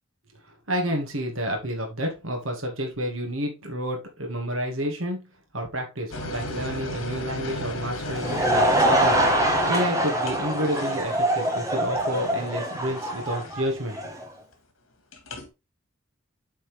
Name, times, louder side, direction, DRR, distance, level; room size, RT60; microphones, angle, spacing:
voice 1, 0.7-5.2 5.5-14.0, equal, 85° right, 2 dB, 2.0 m, -30 dB
sound 1, 6.1-13.8 15.1-15.5, left 1 dB, 85° left, 1.9 m, -36 dB
Laughter / Crowd, 7.9-14.2, right 1 dB, 15° right, 1.5 m, -24 dB
8.6 x 4.2 x 3.4 m, 0.25 s
head